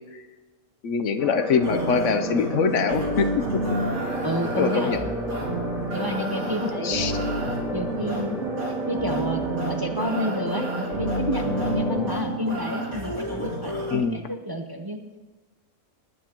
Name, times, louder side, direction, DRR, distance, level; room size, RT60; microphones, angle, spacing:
voice 1, 0.8-3.3 4.6-5.1 6.8-7.1 13.9-14.2, left 5 dB, 70° left, 8 dB, 1.1 m, -23 dB
sound 1, 1.2-12.1, equal, ahead, 1.5 m, -33 dB
sound 2, 1.6-14.0, right 2 dB, 70° right, 2.9 m, -30 dB
voice 2, 4.2-5.0 5.9-7.5 7.7-8.4 8.9-15.0, equal, 20° right, 4 dB, 0.7 m, -30 dB
20.0 x 9.9 x 3.0 m, 1.2 s
omnidirectional pair, 1.3 m